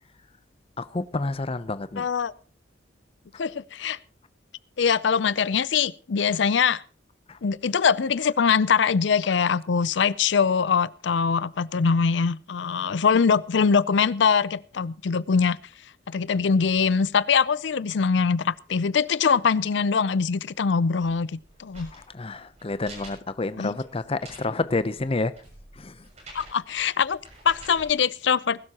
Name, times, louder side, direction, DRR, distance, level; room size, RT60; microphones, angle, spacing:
voice 1, 0.8-2.1 7.3-7.4 21.9-25.3 25.7-26.0, left 3 dB, 30° left, 0.6 m, -29 dB
voice 2, 2.0-2.3 3.4-4.0 4.8-6.8 7.4-15.6 16.1-21.3 21.6-21.9 23.6-23.7 26.3-27.2 27.5-28.6, left 6 dB, 70° left, 0.5 m, -23 dB
sound 1, 21.0-27.9, right 1 dB, 40° right, 6.9 m, -48 dB
20.0 x 12.0 x 2.9 m
head